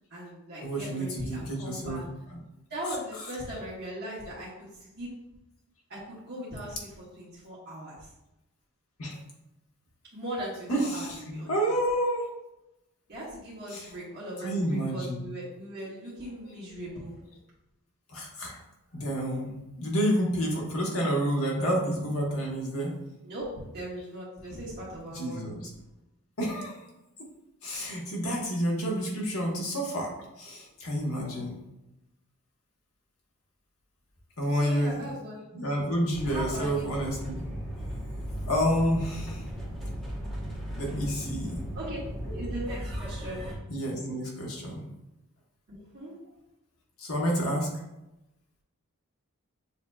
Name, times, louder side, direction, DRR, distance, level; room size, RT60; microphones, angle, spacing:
voice 1, 0.1-2.0 2.7-5.1 5.9-8.1 10.1-11.6 13.1-17.2 23.2-23.5 23.7-25.4 34.4-35.6 36.2-36.9 41.7-43.4 45.7-46.1, right 1 dB, 50° right, -8 dB, 1.4 m, -39 dB
voice 2, 0.6-2.4 2.8-3.4 6.8-6.9 9.0-9.2 10.7-12.3 13.7-14.0 14.4-15.2 18.1-18.6 18.9-22.9 25.1-25.7 26.4-26.8 27.6-31.6 34.4-35.1 35.5-37.4 38.4-39.4 40.8-41.7 43.7-44.8 47.0-47.7, equal, 75° left, -2 dB, 1.3 m, -29 dB
sound 1, 36.1-43.6, equal, ahead, 1.0 m, -36 dB
7.1 x 2.8 x 2.3 m, 0.92 s
head